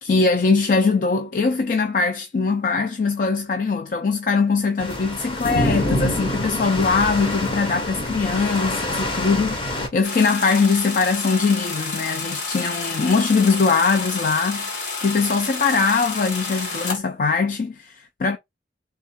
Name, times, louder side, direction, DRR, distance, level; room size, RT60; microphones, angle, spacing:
voice 1, 0.0-18.4, left 4 dB, 45° left, 0.4 m, -21 dB
sound 1, 4.8-9.9, left 1 dB, 30° left, 0.8 m, -26 dB
sound 2, 10.0-17.0, left 4 dB, 70° left, 1.6 m, -30 dB
3.6 x 2.3 x 4.3 m
head